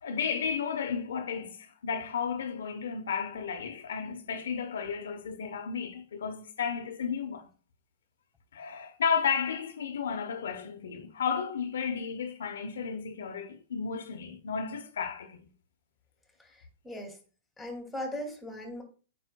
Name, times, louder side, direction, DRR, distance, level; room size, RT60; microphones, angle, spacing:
voice 1, 0.0-7.5 8.5-15.4, left 6 dB, 80° left, 0.9 m, -33 dB
voice 2, 16.8-17.2 17.6-18.8, left 1 dB, 5° left, 2.3 m, -38 dB
9.1 x 5.2 x 2.3 m
hypercardioid pair, 145°, 0 cm